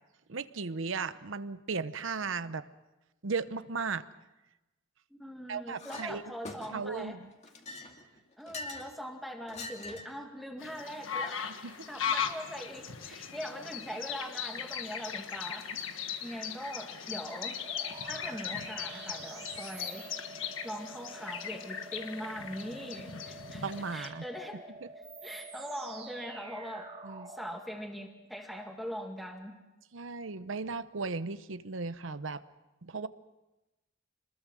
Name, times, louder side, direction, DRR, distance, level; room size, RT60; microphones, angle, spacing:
voice 1, 0.3-2.7 3.2-4.1 5.5-6.2 6.7-7.3 11.6-11.7 23.6-24.2 27.0-27.3 29.9-32.4 32.8-33.1, right 4 dB, 75° right, 13 dB, 0.8 m, -36 dB
voice 2, 5.1-7.2 8.4-11.4 11.9-15.7 16.2-17.6 18.1-20.1 20.4-24.6 25.2-26.9 27.3-29.6, equal, ahead, 2 dB, 2.1 m, -41 dB
Chink clink, 5.8-6.1 6.4-7.0 7.4-8.9 9.5-10.2, left 2 dB, 35° left, 2.3 m, -43 dB
sound 1, 10.6-24.1, left 7 dB, 80° left, 1.6 m, -38 dB
sound 2, 17.6-27.5, right 3 dB, 30° right, 2.1 m, -47 dB
26.5 x 21.0 x 6.3 m, 1.0 s
head